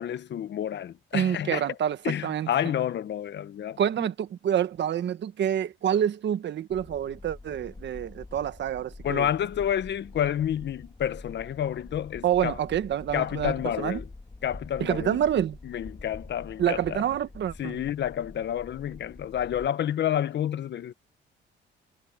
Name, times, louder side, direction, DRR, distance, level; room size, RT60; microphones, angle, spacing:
voice 1, 0.0-1.7 2.0-3.8 9.0-12.6 13.1-14.0 14.4-15.2 15.6-17.0 17.6-20.9, left 10 dB, 60° left, 1.2 m, -29 dB
voice 2, 1.1-2.0 2.2-2.5 3.8-9.3 12.2-14.0 14.8-15.6 16.6-17.8, right 10 dB, 65° right, 1.4 m, -27 dB
sound 1, 6.7-19.7, left 3 dB, 20° left, 3.0 m, -45 dB
cardioid pair, 90°, 20 cm